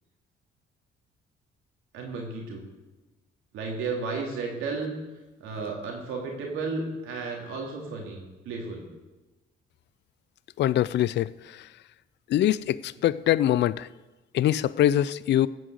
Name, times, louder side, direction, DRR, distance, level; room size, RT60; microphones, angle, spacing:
voice 1, 1.9-2.6 3.5-4.9 5.4-8.8, right 4 dB, 90° right, 3.2 m, -33 dB
voice 2, 10.6-11.7 12.3-13.9 14.3-15.5, left 12 dB, 60° left, 0.4 m, -23 dB
15.5 x 6.3 x 7.9 m
cardioid pair, 90°, 20 cm